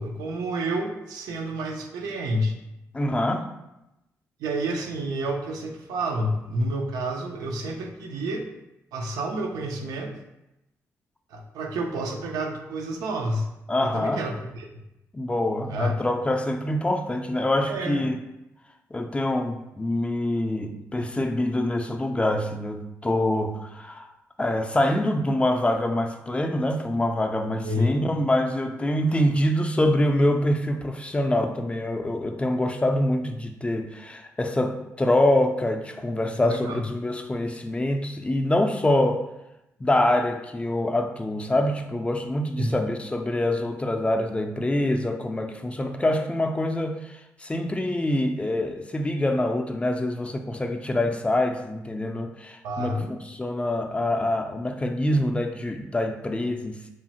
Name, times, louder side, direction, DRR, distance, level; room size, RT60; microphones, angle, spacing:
voice 1, 0.0-2.5 4.4-8.5 8.9-10.1 11.3-13.5 13.8-14.8 15.7-16.0 17.7-18.0 27.6-28.0 36.4-36.8 42.6-42.8 52.6-53.1, right 1 dB, 90° right, 3 dB, 0.4 m, -29 dB
voice 2, 2.9-3.5 13.7-14.2 15.1-18.2 18.9-24.1 24.4-39.3 39.8-53.0 53.4-56.9, left 1 dB, 20° left, 5 dB, 0.3 m, -25 dB
3.0 x 2.0 x 2.8 m, 0.90 s
cardioid pair, 60°, 6 cm